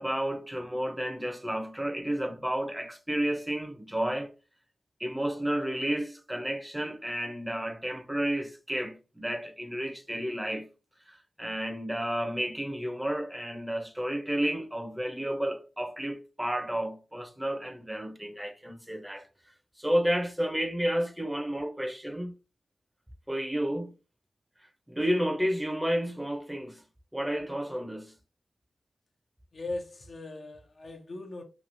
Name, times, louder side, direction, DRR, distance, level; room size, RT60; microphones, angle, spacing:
voice 1, 0.0-4.3 5.0-10.7 11.1-19.3 19.8-22.3 23.3-23.9 24.9-26.8 27.1-28.1, equal, 10° right, 0.6 m, -31 dB
voice 2, 29.5-31.4, left 2 dB, 65° left, 0.7 m, -39 dB
3.0 x 2.7 x 2.6 m
cardioid pair, 50°, 0 cm